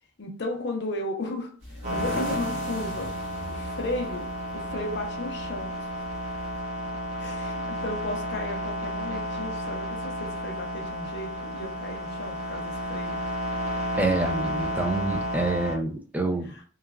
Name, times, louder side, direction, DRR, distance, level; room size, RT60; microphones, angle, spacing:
voice 1, 0.2-1.6 1.9-3.2 3.5-5.9 7.2-13.2 16.4-16.6, left 2 dB, 55° left, 0.6 m, -35 dB
sound 1, 1.6-6.6, equal, 65° right, 1.1 m, -39 dB
sound 2, 1.8-15.8, equal, 35° right, 0.8 m, -32 dB
voice 2, 14.0-16.5, right 2 dB, 10° right, 0.3 m, -27 dB
3.0 x 2.3 x 2.3 m
head